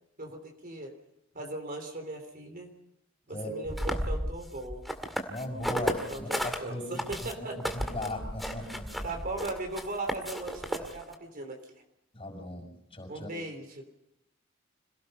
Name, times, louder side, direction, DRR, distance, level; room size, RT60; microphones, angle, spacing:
voice 1, 0.2-0.9 1.3-2.7 3.3-4.8 5.8-7.6 9.0-11.6 13.1-13.8, right 2 dB, 45° right, 4 dB, 3.4 m, -38 dB
sound 1, 3.7-6.6 7.0-11.1, equal, ahead, 2.0 m, -33 dB
voice 2, 5.3-6.9 7.6-9.0 12.1-12.7 12.9-13.3, left 1 dB, 30° left, 2 dB, 6.6 m, -37 dB
26.5 x 18.0 x 5.5 m, 0.85 s
head